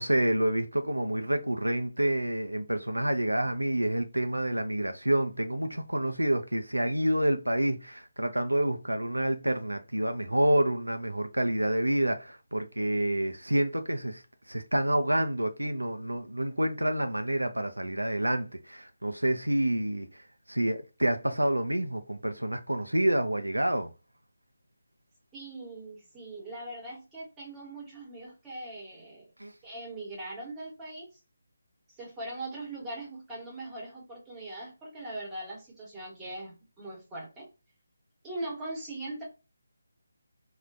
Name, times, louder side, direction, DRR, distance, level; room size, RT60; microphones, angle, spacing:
voice 1, 0.0-14.2 14.5-20.2 20.5-23.9 29.4-29.5, right 1 dB, 80° right, 0.5 m, -28 dB
voice 2, 25.3-29.3 29.6-31.1 32.0-37.5 38.2-39.3, right 1 dB, 10° right, 1.2 m, -40 dB
3.6 x 2.4 x 2.6 m
figure-of-eight pair, 155°, 0 cm